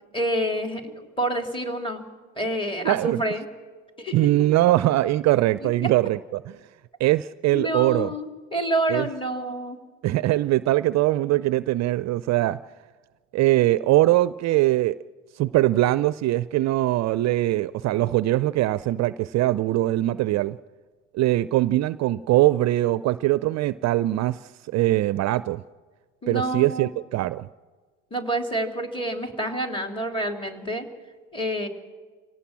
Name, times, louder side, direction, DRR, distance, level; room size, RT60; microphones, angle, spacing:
voice 1, 0.1-2.1 2.4-3.5 4.0-4.2 5.6-5.9 7.5-9.8 26.2-26.9 28.1-30.9 31.3-31.7, right 1 dB, 15° left, 3 dB, 3.7 m, -28 dB
voice 2, 2.8-3.2 4.1-6.5 7.0-8.1 8.9-9.1 10.0-12.6 13.3-15.0 15.3-20.6 21.1-25.6 26.3-27.5, right 16 dB, 45° right, 16 dB, 0.5 m, -22 dB
26.5 x 18.0 x 6.2 m, 1.4 s
hypercardioid pair, 60°, 37 cm